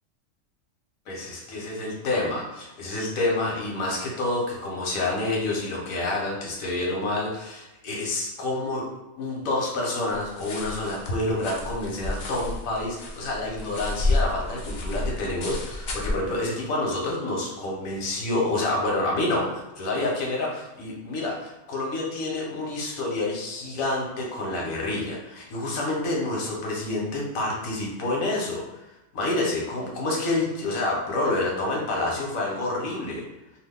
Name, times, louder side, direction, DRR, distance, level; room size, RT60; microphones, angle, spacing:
voice 1, 1.1-8.9 9.2-28.8 29.1-33.2, left 2 dB, 90° left, -2 dB, 1.3 m, -28 dB
sound 1, 10.1-16.1, left 2 dB, 70° left, 0.4 m, -30 dB
2.7 x 2.4 x 3.5 m, 1.0 s
omnidirectional pair, 1.4 m